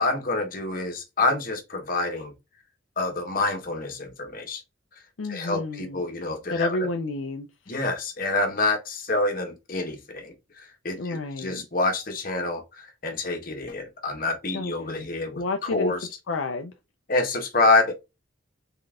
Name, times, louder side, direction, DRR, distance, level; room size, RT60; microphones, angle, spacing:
voice 1, 0.0-2.3 3.0-4.6 5.3-6.7 7.7-15.4 15.7-16.0 17.1-17.9, left 3 dB, 45° left, 1.1 m, -27 dB
voice 2, 5.2-6.0 6.5-7.5 10.9-11.7 14.5-15.1 15.4-15.9 16.3-16.7, left 2 dB, 70° left, 0.4 m, -30 dB
3.8 x 3.8 x 2.4 m
head